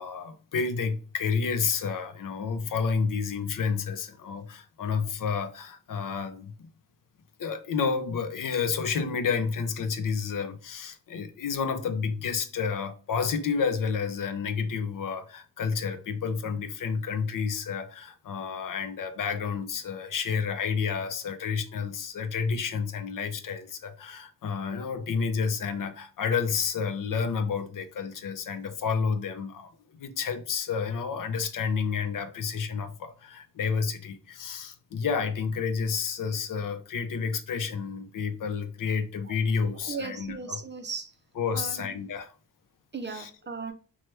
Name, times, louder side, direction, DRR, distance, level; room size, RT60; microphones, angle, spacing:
voice 1, 0.0-6.7 7.4-40.6 41.4-42.3 43.1-43.3, left 5 dB, 60° left, 0.6 m, -30 dB
voice 2, 39.8-41.1 41.5-41.9 42.9-43.7, right 4 dB, 30° right, 0.5 m, -37 dB
2.9 x 2.3 x 3.2 m
supercardioid pair, 45°, 37 cm